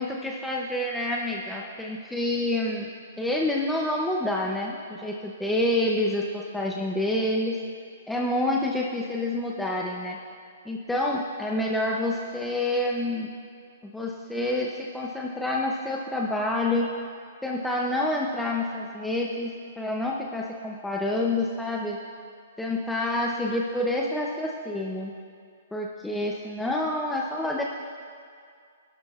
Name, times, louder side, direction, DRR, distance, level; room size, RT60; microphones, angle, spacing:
voice 1, 0.0-2.9 3.2-7.6 8.1-10.2 10.7-13.3 13.8-16.9 17.4-22.0 22.6-25.1 25.7-27.6, left 1 dB, ahead, -2 dB, 0.5 m, -28 dB
25.5 x 12.0 x 2.4 m, 2.2 s
hypercardioid pair, 180°, 0 cm